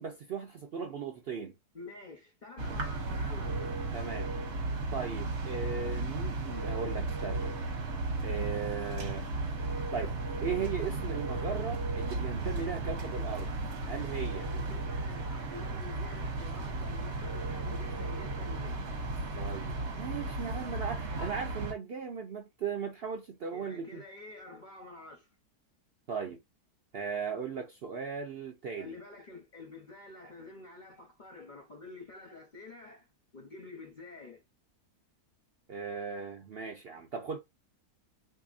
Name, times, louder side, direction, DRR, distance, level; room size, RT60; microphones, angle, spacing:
voice 1, 0.0-1.5 3.9-4.3 4.9-7.6 8.2-9.3 9.9-10.1 10.4-13.5 13.9-14.5 19.4-24.0 26.1-26.4 26.9-28.9 35.7-37.4, right 6 dB, 70° right, 0.5 m, -37 dB
voice 2, 1.7-3.8 14.3-18.8 23.5-25.3 28.8-33.1 33.3-34.4, left 3 dB, 50° left, 0.6 m, -48 dB
sound 1, 2.6-21.7, right 2 dB, 50° right, 1.0 m, -35 dB
3.8 x 2.8 x 2.4 m
omnidirectional pair, 1.7 m